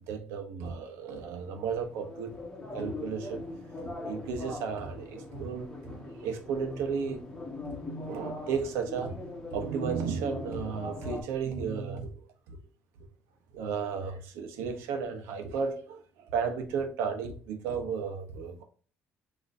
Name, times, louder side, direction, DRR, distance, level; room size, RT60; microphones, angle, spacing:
voice 1, 0.1-2.4 2.7-3.5 3.8-7.2 8.0-9.2 9.5-12.1 12.5-12.6 13.5-16.0 16.3-18.6, right 6 dB, 85° right, 1.0 m, -34 dB
sound 1, 1.0-11.2, left 2 dB, 15° left, 1.2 m, -41 dB
6.2 x 3.0 x 2.6 m
cardioid pair, 150°, 4 cm